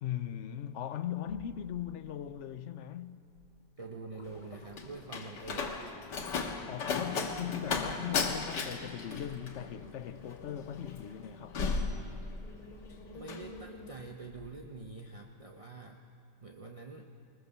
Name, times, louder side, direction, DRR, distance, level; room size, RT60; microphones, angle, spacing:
voice 1, 0.0-3.2 6.7-11.6, left 10 dB, 60° left, 0.8 m, -39 dB
sound 1, 1.2-1.9 2.3-2.8 3.3-3.5 3.9-6.1 6.6-6.8 7.2-14.7 15.2-15.3, left 2 dB, 25° left, 2.0 m, -53 dB
voice 2, 3.8-5.9 13.1-16.0 16.4-17.1, right 3 dB, 30° right, 0.6 m, -46 dB
Slam, 4.2-12.7 13.0-13.5, left 4 dB, 85° left, 2.0 m, -35 dB
21.5 x 20.0 x 6.9 m
omnidirectional pair, 1.8 m